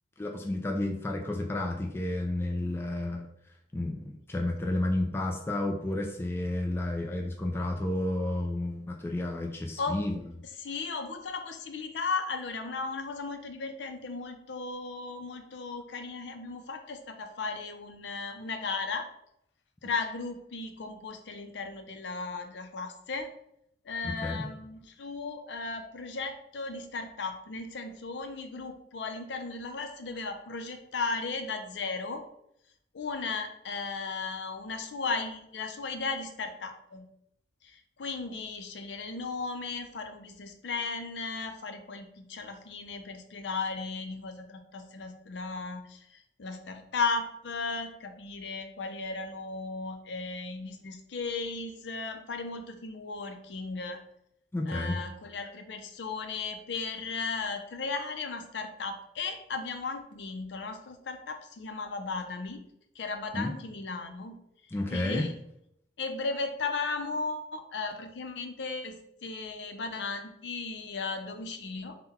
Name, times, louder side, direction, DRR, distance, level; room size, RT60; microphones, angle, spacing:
voice 1, 0.2-3.3 3.7-10.2 24.0-24.5 54.5-55.0 63.3-63.5 64.7-65.3, left 1 dB, 15° left, 0 dB, 0.3 m, -31 dB
voice 2, 10.6-19.1 19.8-23.3 23.8-32.2 32.9-37.1 37.6-54.0 54.7-62.6 62.9-64.4 64.6-65.4 66.0-72.0, left 4 dB, 80° left, 6 dB, 0.5 m, -36 dB
3.8 x 2.2 x 4.1 m, 0.76 s
head